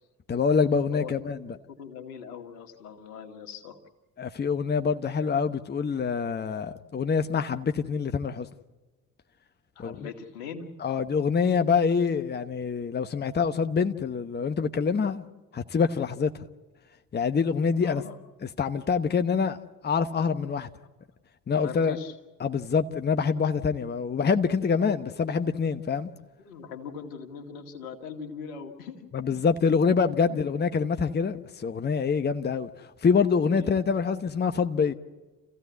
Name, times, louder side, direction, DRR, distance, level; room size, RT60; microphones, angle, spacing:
voice 1, 0.3-1.4 4.2-8.5 9.8-10.1 10.8-15.2 15.5-16.3 17.1-18.0 18.4-19.6 19.8-20.7 21.5-22.0 22.4-26.1 29.1-34.9, left 5 dB, 20° left, 1.0 m, -25 dB
voice 2, 1.7-3.8 9.8-10.7 17.7-18.2 21.5-22.2 26.4-29.4 30.3-30.5 33.5-33.9, left 6 dB, 80° left, 2.2 m, -41 dB
28.5 x 15.5 x 8.4 m
hypercardioid pair, 60°, 44 cm